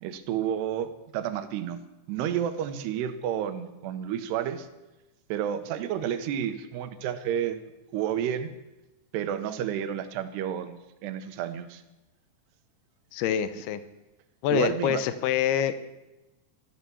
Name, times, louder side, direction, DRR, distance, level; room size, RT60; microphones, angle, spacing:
voice 1, 0.0-4.7 5.3-7.6 7.9-8.5 9.1-11.8 14.5-15.0, right 9 dB, 75° right, 10 dB, 2.8 m, -31 dB
voice 2, 13.1-13.8 14.4-15.9, left 9 dB, 85° left, 12 dB, 2.3 m, -26 dB
14.0 x 12.5 x 7.0 m, 1.0 s
omnidirectional pair, 5.5 m